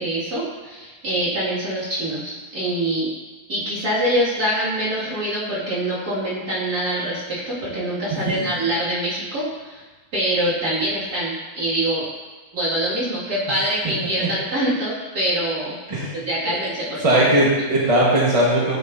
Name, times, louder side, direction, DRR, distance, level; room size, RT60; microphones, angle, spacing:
voice 1, 0.0-3.1 3.5-9.8 10.1-12.0 12.5-15.8 16.1-17.2, right 1 dB, 80° right, -9 dB, 2.8 m, -24 dB
voice 2, 8.1-8.5 14.0-14.3 15.9-16.1 16.5-16.6 17.0-18.8, right 1 dB, 25° right, -5 dB, 1.4 m, -19 dB
8.7 x 6.7 x 2.7 m, 1.3 s
omnidirectional pair, 1.6 m